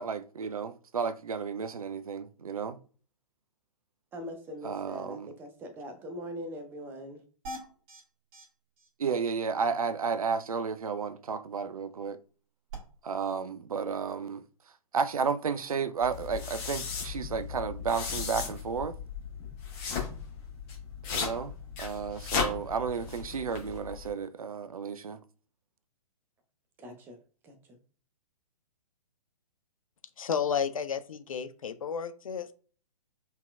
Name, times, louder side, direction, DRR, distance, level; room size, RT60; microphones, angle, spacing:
voice 1, 0.0-2.8 4.6-5.3 9.0-12.2 13.0-14.4 14.9-18.9 21.1-25.2, right 5 dB, 65° right, 0.5 m, -32 dB
voice 2, 4.1-7.2 26.8-27.2 27.4-27.8, equal, 10° right, 0.5 m, -42 dB
sound 1, 7.4-8.0 8.3-8.4 8.8-8.9 9.2-9.3 12.7-12.8, right 1 dB, 25° right, 1.9 m, -41 dB
sound 2, 16.0-24.1, left 6 dB, 25° left, 1.3 m, -36 dB
voice 3, 30.2-32.5, left 7 dB, 60° left, 0.5 m, -32 dB
4.0 x 3.7 x 2.3 m
figure-of-eight pair, 120°, 20 cm